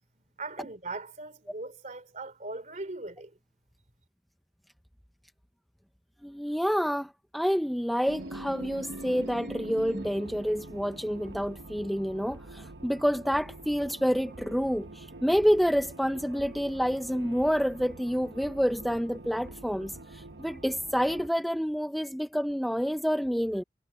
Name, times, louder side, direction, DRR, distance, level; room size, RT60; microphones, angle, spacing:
voice 1, 0.4-3.4, right 2 dB, 45° right, 3.0 m, -39 dB
voice 2, 6.2-23.6, equal, ahead, 0.6 m, -28 dB
sound 1, 8.1-21.3, right 1 dB, 80° right, 1.2 m, -44 dB
head